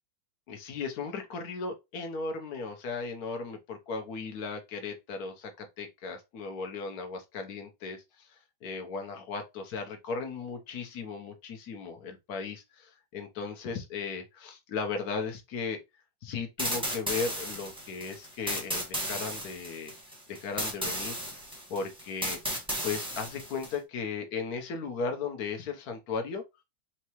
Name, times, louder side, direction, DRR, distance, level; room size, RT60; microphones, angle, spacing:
voice 1, 0.5-15.8 16.2-19.9 20.3-21.2 21.7-26.4, left 4 dB, 60° left, 1.3 m, -36 dB
sound 1, 16.6-23.7, equal, 5° right, 1.0 m, -34 dB
4.5 x 3.0 x 3.0 m
omnidirectional pair, 2.1 m